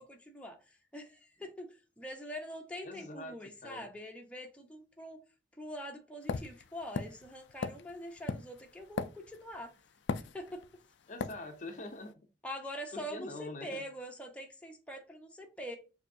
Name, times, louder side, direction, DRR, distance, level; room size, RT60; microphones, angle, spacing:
voice 1, 0.0-1.7 2.0-5.2 5.6-9.7 10.2-10.6 12.4-15.8, equal, 5° left, 0.8 m, -44 dB
voice 2, 2.8-3.9 11.1-12.3 12.9-13.8, left 2 dB, 45° left, 0.6 m, -45 dB
sound 1, 6.3-9.6 10.1-10.8 11.2-11.4, left 5 dB, 85° left, 0.4 m, -37 dB
6.6 x 2.7 x 2.7 m
head